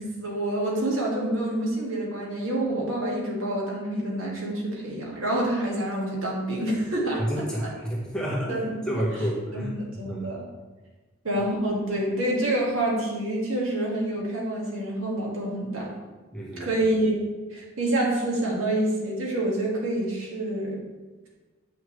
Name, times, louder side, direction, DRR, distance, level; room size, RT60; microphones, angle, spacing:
voice 1, 0.0-7.2 8.5-9.0 9.5-10.4 11.2-15.9 16.6-17.1 17.5-20.8, right 1 dB, 85° right, -3 dB, 2.1 m, -27 dB
voice 2, 7.2-10.3 16.3-16.7, equal, 5° left, -5 dB, 1.4 m, -30 dB
8.2 x 5.9 x 3.3 m, 1.3 s
head